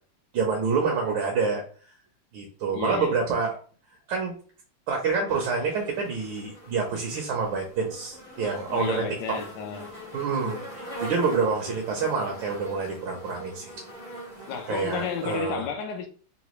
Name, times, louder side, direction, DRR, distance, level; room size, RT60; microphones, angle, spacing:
voice 1, 0.3-1.6 2.3-3.6 4.1-4.3 4.9-9.0 10.1-13.7 14.7-15.6, right 5 dB, 70° right, 1.2 m, -27 dB
voice 2, 2.7-3.2 8.7-10.0 14.5-16.1, left 6 dB, 75° left, 1.0 m, -32 dB
sound 1, 5.3-15.4, right 1 dB, 55° right, 0.4 m, -42 dB
3.9 x 2.2 x 3.0 m
omnidirectional pair, 2.4 m